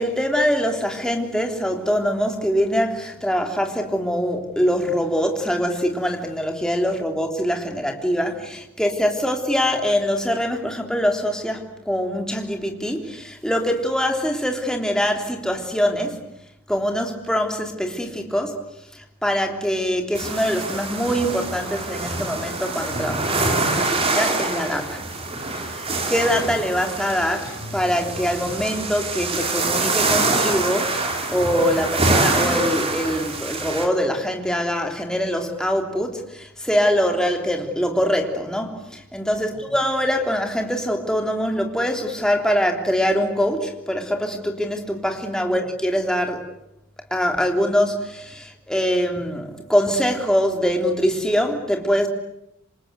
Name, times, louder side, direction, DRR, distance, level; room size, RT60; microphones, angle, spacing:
voice 1, 0.0-16.3 16.7-18.6 18.9-25.0 25.7-38.8 39.1-46.4 47.1-52.1, equal, 5° left, 3.3 m, -23 dB
sound 1, 20.1-33.9, right 3 dB, 25° right, 3.5 m, -25 dB
sound 2, 27.4-28.8, left 1 dB, 45° left, 7.0 m, -40 dB
27.0 x 27.0 x 8.2 m
head